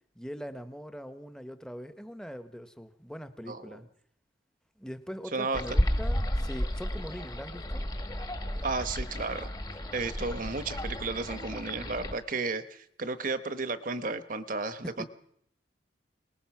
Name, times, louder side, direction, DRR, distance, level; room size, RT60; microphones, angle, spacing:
voice 1, 0.1-3.9 4.8-7.8 14.8-15.1, equal, 5° left, 10 dB, 1.1 m, -42 dB
voice 2, 5.3-5.6 8.6-9.5 9.9-15.0, right 3 dB, 45° right, 11 dB, 1.1 m, -33 dB
sound 1, 5.5-12.1, equal, 20° left, 1.5 m, -32 dB
24.5 x 19.5 x 6.0 m, 0.69 s
head